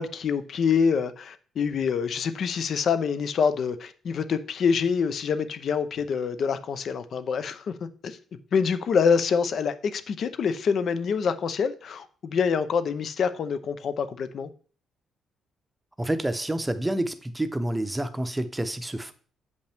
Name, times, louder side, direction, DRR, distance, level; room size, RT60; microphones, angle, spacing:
voice 1, 0.0-7.6 8.0-8.2 8.5-14.5, left 6 dB, 60° left, 0.6 m, -26 dB
voice 2, 16.0-19.1, right 1 dB, 10° right, 0.7 m, -28 dB
7.9 x 5.3 x 3.5 m
cardioid pair, 90°, 0 cm